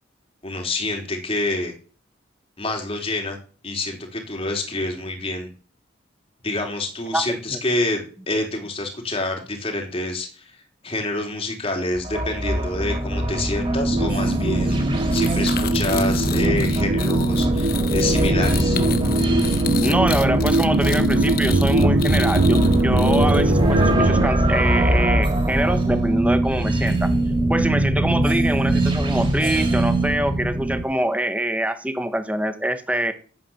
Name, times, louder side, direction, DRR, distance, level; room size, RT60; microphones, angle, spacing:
voice 1, 0.4-1.7 2.6-3.4 3.6-5.5 6.4-10.4 10.8-18.8, left 2 dB, 30° left, 3 dB, 3.6 m, -27 dB
sound 1, 11.9-30.8, right 1 dB, 30° right, 4.3 m, -21 dB
sound 2, 13.8-24.3, right 2 dB, 80° right, 1.0 m, -23 dB
sound 3, 15.1-23.6, left 6 dB, 50° left, 1.1 m, -32 dB
voice 2, 19.8-27.1 27.5-33.1, right 1 dB, 5° right, 9 dB, 1.4 m, -24 dB
12.0 x 9.1 x 7.2 m, 0.39 s
head